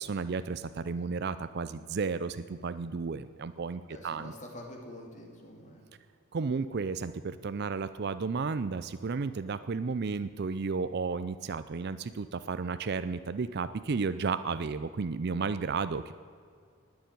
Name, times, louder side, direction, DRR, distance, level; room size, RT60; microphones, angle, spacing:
voice 1, 0.0-4.3 6.3-16.1, right 4 dB, 50° right, 13 dB, 0.4 m, -33 dB
voice 2, 3.9-5.8, left 1 dB, 35° left, 1 dB, 2.5 m, -46 dB
19.5 x 7.1 x 9.2 m, 2.2 s
head